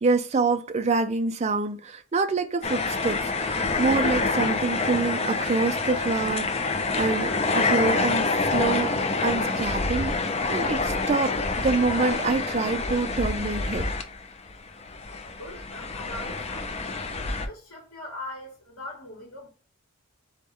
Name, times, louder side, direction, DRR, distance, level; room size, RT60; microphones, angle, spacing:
voice 1, 0.0-9.0 9.2-10.2 10.5-13.9, right 3 dB, 30° right, 0.4 m, -26 dB
sound 1, 2.6-14.5 14.8-17.5, left 3 dB, 30° left, 0.5 m, -27 dB
voice 2, 15.3-17.0 17.4-19.5, left 1 dB, 85° left, 1.6 m, -41 dB
3.9 x 3.6 x 3.2 m
head